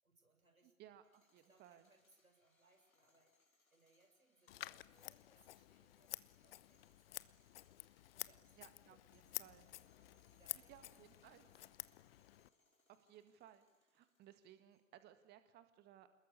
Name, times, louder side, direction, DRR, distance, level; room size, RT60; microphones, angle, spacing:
voice 1, 0.0-0.7 1.4-3.3 3.7-7.4 8.1-9.0 10.3-10.9 11.2-11.5, right 2 dB, 85° right, 5 dB, 6.5 m, -74 dB
voice 2, 0.6-1.9 8.6-9.7 10.7-11.5 12.9-16.1, right 11 dB, 25° right, 10 dB, 1.8 m, -62 dB
sound 1, 0.9-15.1, left 3 dB, 90° left, 4.2 m, -78 dB
Scissors, 4.5-12.5, left 14 dB, 45° left, 0.9 m, -51 dB
28.5 x 21.0 x 8.5 m, 0.97 s
figure-of-eight pair, 110°, 41 cm